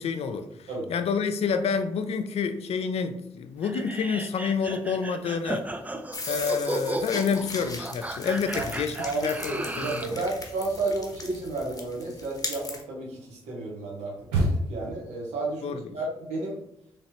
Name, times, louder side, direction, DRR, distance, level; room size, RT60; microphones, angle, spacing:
voice 1, 0.0-5.7 6.2-10.3 15.6-15.8, left 6 dB, 60° left, 0.4 m, -28 dB
sound 1, 3.6-10.2, right 1 dB, 15° right, 0.4 m, -35 dB
sound 2, 6.1-12.8, left 3 dB, 30° left, 0.9 m, -39 dB
sound 3, 8.5-9.6 9.9-15.0, right 1 dB, 90° right, 0.7 m, -32 dB
voice 2, 8.9-16.6, right 2 dB, 75° right, 1.1 m, -32 dB
3.1 x 3.0 x 2.9 m
hypercardioid pair, 40°, 12 cm